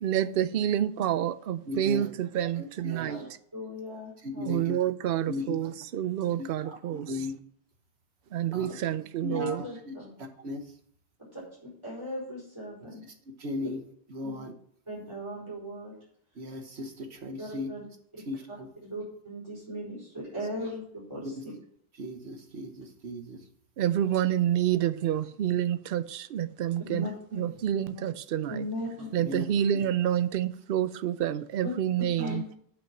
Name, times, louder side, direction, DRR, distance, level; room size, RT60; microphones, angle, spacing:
voice 1, 0.0-3.4 4.5-7.1 8.3-9.6 23.8-27.1 27.3-28.7 29.1-32.4, right 10 dB, 65° right, 0.7 m, -28 dB
voice 2, 1.7-2.1 2.4-3.1 4.2-4.7 5.3-5.5 6.4-7.3 8.5-8.8 9.2-9.9 10.4-10.7 13.4-13.8 14.1-14.5 16.3-17.7 18.3-18.7 22.0-23.4 29.2-29.5 29.7-29.9 32.2-32.3, left 2 dB, 85° right, 1.6 m, -37 dB
voice 3, 3.5-4.5 9.3-10.1 11.8-13.0 14.2-14.4 14.9-15.9 17.4-17.8 18.1-18.2 18.8-21.3 26.9-27.4 28.5-29.1 31.6-31.7 32.2-32.4, left 1 dB, 30° right, 4.8 m, -38 dB
8.2 x 6.2 x 6.0 m
omnidirectional pair, 1.1 m